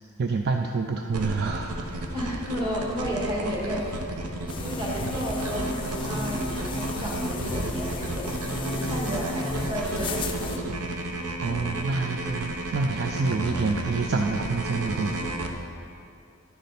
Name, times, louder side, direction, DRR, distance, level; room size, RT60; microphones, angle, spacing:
voice 1, 0.2-1.9 4.6-4.7 5.0-5.1 11.4-15.6, right 4 dB, 45° right, 4 dB, 0.4 m, -28 dB
sound 1, 1.1-15.5, right 1 dB, 85° right, 0.8 m, -33 dB
voice 2, 2.1-10.7, equal, 20° right, -4 dB, 1.8 m, -33 dB
sound 2, 4.5-10.6, left 2 dB, 20° left, 0.4 m, -34 dB
11.0 x 6.6 x 4.3 m, 2.4 s
head